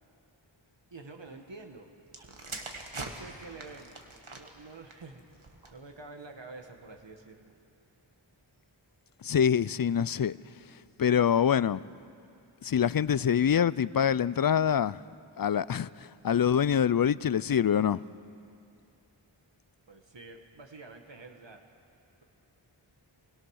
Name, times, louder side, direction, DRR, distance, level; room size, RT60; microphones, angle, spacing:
voice 1, 0.9-1.9 2.9-5.2 5.6-7.5 19.9-21.6, right 3 dB, 65° right, 1.5 m, -48 dB
sound 1, 2.1-5.9 6.7-7.0, right 2 dB, 80° right, 2.0 m, -44 dB
voice 2, 9.2-10.4 11.0-11.8 12.6-15.0 15.4-18.0, left 8 dB, 50° left, 0.4 m, -25 dB
27.0 x 21.0 x 6.4 m
wide cardioid pair, 50°, 48 cm